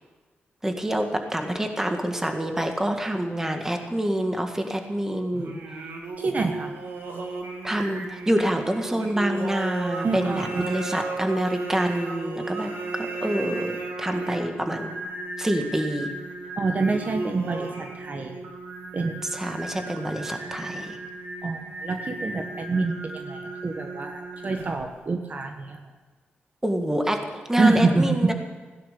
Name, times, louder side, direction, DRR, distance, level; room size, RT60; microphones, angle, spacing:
voice 1, 0.6-5.6 7.6-13.7 14.0-14.9 15.4-16.1 19.3-21.0 26.6-28.3, right 1 dB, 10° right, 5 dB, 1.8 m, -27 dB
Singing, 5.3-24.9, right 3 dB, 80° right, 2.4 m, -35 dB
voice 2, 6.2-6.8 10.0-10.8 16.6-18.4 18.9-19.2 21.4-25.8 27.6-28.3, right 3 dB, 45° right, 5 dB, 1.2 m, -26 dB
16.0 x 10.5 x 6.9 m, 1.4 s
cardioid pair, 95°, 4 cm